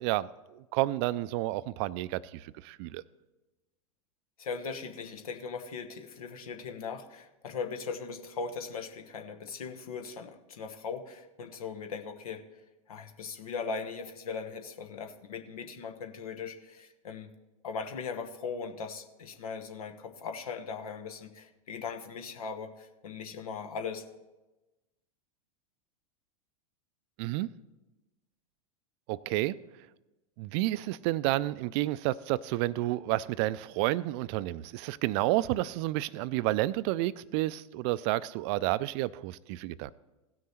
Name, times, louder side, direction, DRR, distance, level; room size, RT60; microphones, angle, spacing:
voice 1, 0.0-3.0 27.2-27.5 29.1-29.5 30.4-39.9, right 17 dB, 50° right, 18 dB, 0.4 m, -30 dB
voice 2, 4.4-12.4 12.9-17.3 17.6-24.0, left 5 dB, 75° left, 6 dB, 1.1 m, -39 dB
16.0 x 6.3 x 4.3 m, 1.1 s
hypercardioid pair, 100°, 18 cm